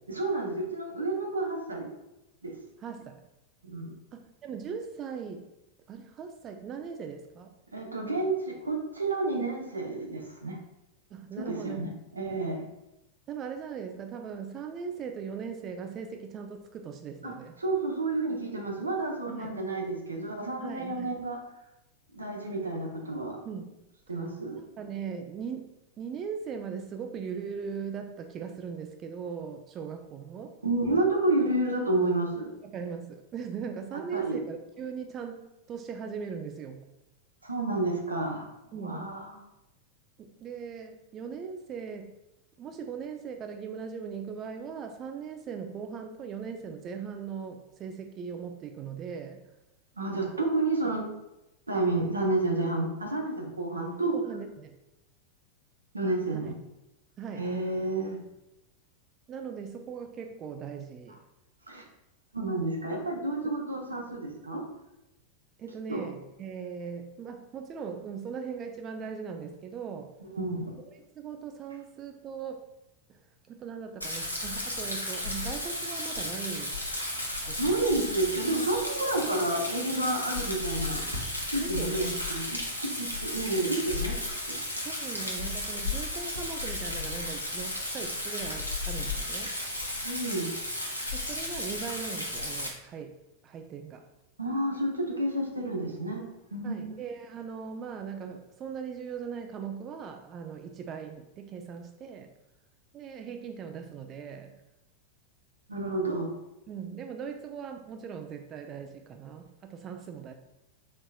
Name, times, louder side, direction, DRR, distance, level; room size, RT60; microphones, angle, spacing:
voice 1, 0.1-1.9 2.4-2.6 3.6-4.0 7.7-10.6 11.4-12.7 17.2-21.4 22.1-23.4 24.1-24.6 30.6-32.5 34.1-34.4 37.4-38.5 38.8-39.4 50.0-51.1 51.7-54.1 55.9-56.5 57.4-58.2 61.7-61.8 62.3-64.6 65.9-66.1 70.3-70.8 77.6-81.0 81.5-84.2 84.5-84.6 90.0-90.5 94.4-96.2 96.5-96.9 105.7-106.3, right 2 dB, 80° right, 1 dB, 0.8 m, -30 dB
voice 2, 2.8-3.2 4.1-5.5 5.9-7.5 11.1-11.9 13.3-17.5 19.3-19.5 20.6-21.1 23.4-23.8 24.8-30.6 32.6-36.9 38.7-39.2 40.2-42.2 42.6-49.4 54.1-54.8 56.3-56.5 57.2-57.5 59.3-61.2 65.6-70.1 70.8-72.7 73.1-73.2 73.5-76.8 77.5-77.6 81.6-82.1 84.8-89.6 91.1-93.2 93.4-94.1 96.6-102.3 102.9-104.5 106.7-110.3, right 6 dB, 30° right, 5 dB, 0.3 m, -39 dB
Rain, 74.0-92.7, left 1 dB, 90° left, 0.8 m, -34 dB
4.2 x 4.1 x 2.3 m, 0.94 s
figure-of-eight pair, 90°, 0 cm